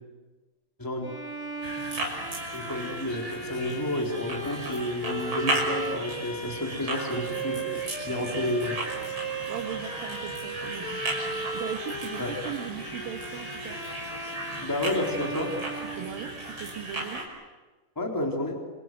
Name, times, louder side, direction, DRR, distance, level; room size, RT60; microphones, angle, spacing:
voice 1, 0.8-1.1 2.5-7.7 8.1-8.8 12.2-12.3 14.6-15.5 18.0-18.6, left 1 dB, 5° left, 0 dB, 3.6 m, -30 dB
Bowed string instrument, 1.0-16.8, right 2 dB, 20° left, 1.8 m, -37 dB
sound 1, 1.6-17.2, right 2 dB, 35° right, 6.2 m, -36 dB
voice 2, 9.5-11.0 11.5-13.8 15.9-17.3, right 8 dB, 90° right, 2 dB, 3.4 m, -38 dB
29.0 x 26.0 x 7.9 m, 1.2 s
omnidirectional pair, 4.0 m